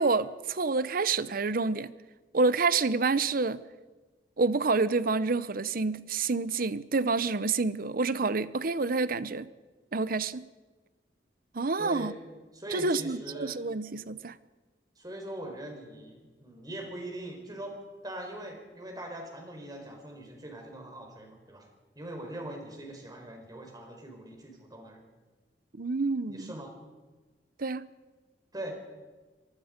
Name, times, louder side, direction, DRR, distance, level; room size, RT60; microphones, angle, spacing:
voice 1, 0.0-1.9 2.3-3.6 4.4-9.5 9.9-10.5 11.5-12.1 12.7-14.3 25.8-26.5 27.6-27.9, right 3 dB, 55° right, 16 dB, 0.8 m, -28 dB
voice 2, 11.8-12.1 12.5-13.6 15.0-17.7 18.0-21.6 22.0-25.0 26.3-26.7 28.5-28.7, right 1 dB, 20° right, 2 dB, 4.6 m, -41 dB
25.0 x 20.0 x 5.2 m, 1.3 s
head